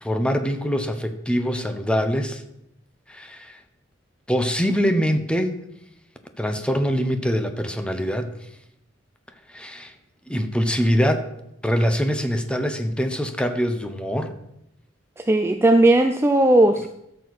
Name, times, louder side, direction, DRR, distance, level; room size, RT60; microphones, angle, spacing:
voice 1, 0.0-2.4 3.1-3.6 4.3-5.6 6.4-8.3 9.5-9.9 10.3-11.3 11.6-14.3, equal, 5° left, 7 dB, 0.9 m, -23 dB
voice 2, 15.2-16.9, right 1 dB, 15° right, 7 dB, 0.4 m, -17 dB
14.0 x 6.8 x 4.2 m, 0.80 s
head